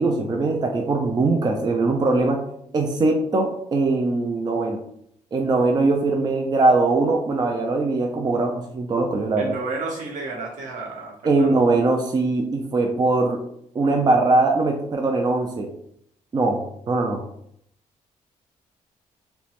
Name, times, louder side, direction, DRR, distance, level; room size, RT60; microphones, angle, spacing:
voice 1, 0.0-2.4 2.7-4.8 5.3-9.5 11.2-13.4 13.7-15.7 16.3-17.2, right 3 dB, 30° right, 2 dB, 0.4 m, -21 dB
voice 2, 9.4-11.5, right 3 dB, 75° right, -2 dB, 0.9 m, -32 dB
2.9 x 2.1 x 2.9 m, 0.70 s
cardioid pair, 105°, 14 cm